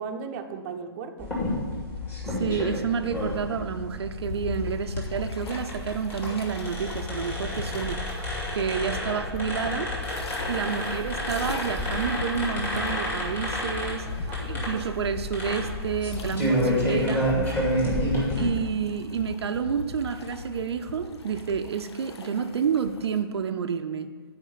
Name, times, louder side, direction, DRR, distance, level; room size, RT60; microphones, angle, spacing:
voice 1, 0.0-1.3 10.6-10.8 14.2-15.1 17.9-18.2, right 5 dB, 35° right, 5 dB, 0.7 m, -37 dB
sound 1, 1.2-18.4, left 1 dB, 15° left, 2.4 m, -30 dB
voice 2, 2.3-9.9 10.5-14.1 14.4-17.3 18.4-24.1, right 6 dB, 80° right, 7 dB, 0.6 m, -29 dB
sound 2, 4.2-23.2, left 3 dB, 80° left, 1.0 m, -40 dB
9.2 x 4.9 x 5.7 m, 1.5 s
hypercardioid pair, 150°, 13 cm